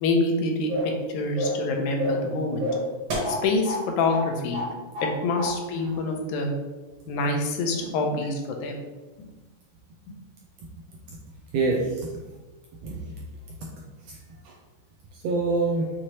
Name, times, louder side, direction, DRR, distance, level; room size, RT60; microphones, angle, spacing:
voice 1, 0.0-2.7 3.3-4.6 5.0-6.5 7.1-8.8 9.2-9.3, left 3 dB, 85° left, 2 dB, 2.1 m, -26 dB
sound 1, 0.7-1.0 1.3-1.7 2.0-2.3 2.6-3.8 4.1-4.3 4.5-5.1 5.4-5.5, equal, 50° right, 1.5 m, -28 dB
voice 2, 7.8-8.2 11.5-12.1 12.8-13.1 14.1-14.2 14.4-14.5 15.1-15.9, right 3 dB, 80° right, -1 dB, 1.5 m, -27 dB
6.2 x 2.8 x 3.0 m, 1.2 s
omnidirectional pair, 3.4 m